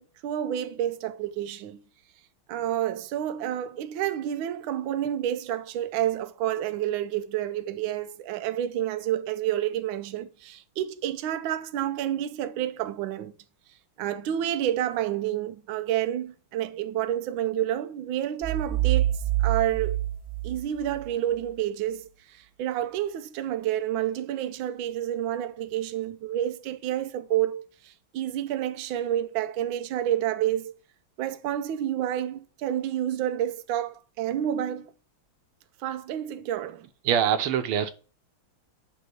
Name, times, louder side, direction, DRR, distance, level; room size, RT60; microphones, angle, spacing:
voice 1, 0.0-1.8 2.5-13.3 14.0-20.0 20.4-30.7 31.2-34.9 35.8-36.8, right 11 dB, 70° right, 1.3 m, -29 dB
sound 1, 18.4-21.1, right 14 dB, 30° right, 1.9 m, -26 dB
voice 2, 37.1-37.9, right 9 dB, 90° right, 1.7 m, -24 dB
8.1 x 3.0 x 5.8 m
omnidirectional pair, 2.4 m